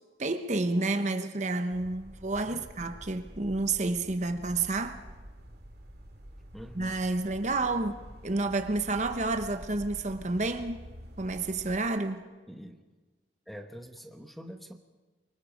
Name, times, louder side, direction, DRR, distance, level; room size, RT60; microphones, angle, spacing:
voice 1, 0.2-5.0 6.8-10.8 11.2-12.2, right 2 dB, 40° right, 0.9 m, -30 dB
sound 1, 1.7-11.8, equal, 55° right, 2.3 m, -48 dB
voice 2, 6.5-7.0 12.5-12.8 13.5-14.7, equal, ahead, 1.0 m, -45 dB
24.5 x 23.0 x 5.1 m
head